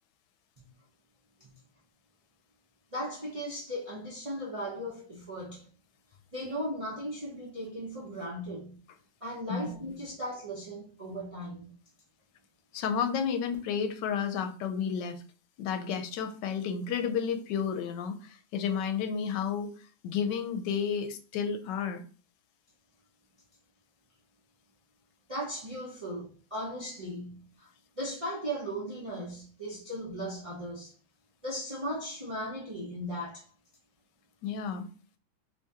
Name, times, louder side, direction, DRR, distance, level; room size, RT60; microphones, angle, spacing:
voice 1, 2.9-5.7 6.3-8.8 9.2-11.7 25.3-27.7 28.0-30.9 31.4-33.4, equal, 45° right, 0.4 m, -37 dB
voice 2, 12.7-15.2 15.6-19.8 20.0-22.0 34.4-34.9, left 7 dB, 80° left, 1.2 m, -31 dB
3.1 x 2.8 x 3.5 m
omnidirectional pair, 1.9 m